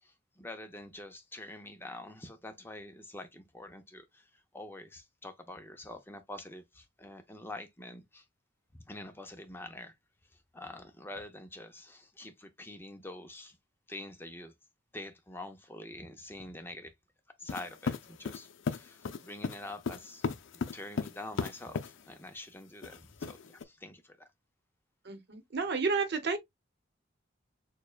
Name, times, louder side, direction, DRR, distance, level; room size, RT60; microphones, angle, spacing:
voice 1, 0.0-8.2 8.7-9.9 10.3-13.6 13.9-14.5 14.9-16.9 17.4-20.4 20.7-24.3, left 2 dB, 10° left, 0.6 m, -46 dB
sound 1, 17.5-21.9 22.8-23.6, left 5 dB, 70° left, 0.5 m, -35 dB
voice 2, 25.0-26.4, right 4 dB, 60° right, 0.9 m, -31 dB
6.5 x 2.2 x 2.3 m
head